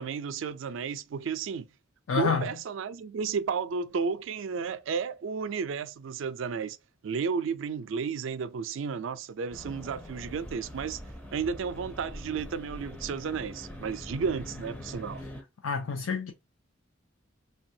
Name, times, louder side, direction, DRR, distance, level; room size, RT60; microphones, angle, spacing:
voice 1, 0.0-1.7 2.2-6.8 7.0-11.0 11.3-15.2, right 6 dB, 75° right, 0.4 m, -33 dB
voice 2, 2.1-2.4 15.6-16.3, left 5 dB, 85° left, 0.5 m, -28 dB
sound 1, 9.5-15.4, equal, 10° left, 0.4 m, -43 dB
3.2 x 2.2 x 2.7 m
head